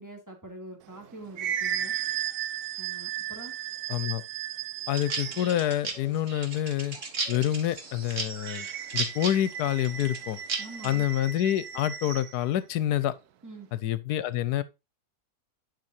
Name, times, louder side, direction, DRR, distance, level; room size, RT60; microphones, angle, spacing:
voice 1, 0.0-1.9 2.8-3.5 10.6-11.1 13.4-13.7, right 2 dB, 10° right, 2.3 m, -44 dB
sound 1, 0.9-5.6 8.4-12.4, right 10 dB, 75° right, 1.2 m, -35 dB
voice 2, 3.9-4.2 4.9-7.0 7.3-8.7 8.9-10.4 10.8-13.1 13.8-14.6, left 12 dB, 80° left, 1.2 m, -27 dB
sound 2, 4.9-10.9, right 4 dB, 50° right, 1.8 m, -35 dB
10.5 x 5.8 x 2.6 m
omnidirectional pair, 1.7 m